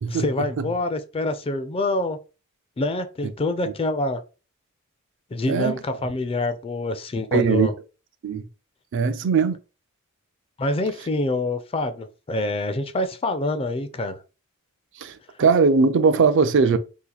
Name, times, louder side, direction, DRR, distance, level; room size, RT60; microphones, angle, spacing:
voice 1, 0.1-2.2 2.8-4.2 5.3-7.7 10.6-14.2, left 2 dB, 25° left, 0.4 m, -26 dB
voice 2, 5.5-5.8 7.3-7.7 8.2-8.5 8.9-9.6 15.0-16.8, right 5 dB, 60° right, 0.4 m, -20 dB
2.8 x 2.4 x 3.9 m
head